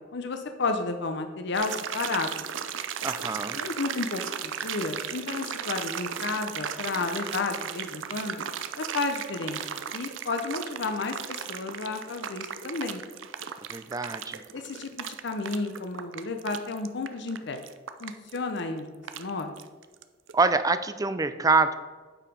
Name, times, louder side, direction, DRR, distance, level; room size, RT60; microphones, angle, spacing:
voice 1, 0.1-2.3 3.6-8.4 8.8-9.6 9.9-13.0 14.5-17.6 18.0-18.9 19.1-19.5, left 3 dB, 65° left, 6 dB, 0.7 m, -32 dB
sound 1, 1.5-20.0 20.3-20.4, right 8 dB, 90° right, 0.5 m, -36 dB
voice 2, 3.0-3.6 13.7-14.4 20.3-21.7, right 4 dB, 20° right, 11 dB, 0.4 m, -25 dB
8.7 x 4.9 x 5.2 m, 1.4 s
head